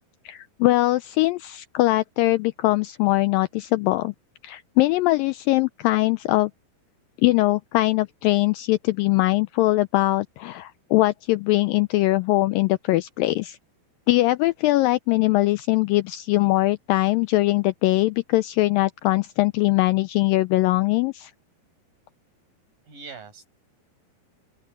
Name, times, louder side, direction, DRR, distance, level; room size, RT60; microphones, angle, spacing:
voice 1, 0.3-4.1 4.4-6.5 7.2-13.6 14.1-21.3, left 19 dB, 90° left, 2.0 m, -21 dB
voice 2, 22.9-23.5, right 5 dB, 55° right, 9.6 m, -42 dB
open air
omnidirectional pair, 4.6 m